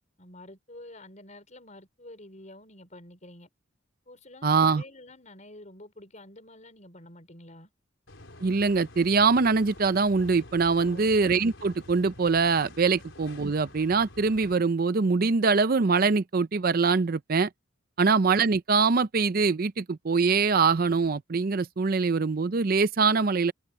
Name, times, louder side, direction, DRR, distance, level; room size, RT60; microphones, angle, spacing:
voice 1, 0.2-3.5 4.1-7.7 10.8-11.1, left 1 dB, 35° left, 5.1 m, -48 dB
voice 2, 4.4-4.8 8.4-17.5 18.0-23.5, right 4 dB, 45° right, 0.5 m, -23 dB
sound 1, 8.1-14.5, left 1 dB, 70° left, 4.8 m, -48 dB
head